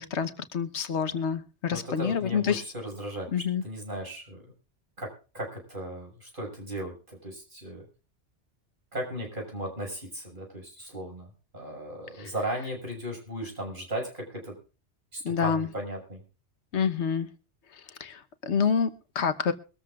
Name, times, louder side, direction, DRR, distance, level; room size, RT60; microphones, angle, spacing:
voice 1, 0.0-2.6 3.3-3.6 12.2-12.3 15.2-15.7 16.7-17.3 17.7-19.5, left 6 dB, 80° left, 11 dB, 1.3 m, -28 dB
voice 2, 1.7-4.4 5.0-7.8 8.9-14.6 15.1-16.2, right 1 dB, 45° right, 1 dB, 7.0 m, -36 dB
23.5 x 13.5 x 2.5 m, 0.35 s
omnidirectional pair, 1.2 m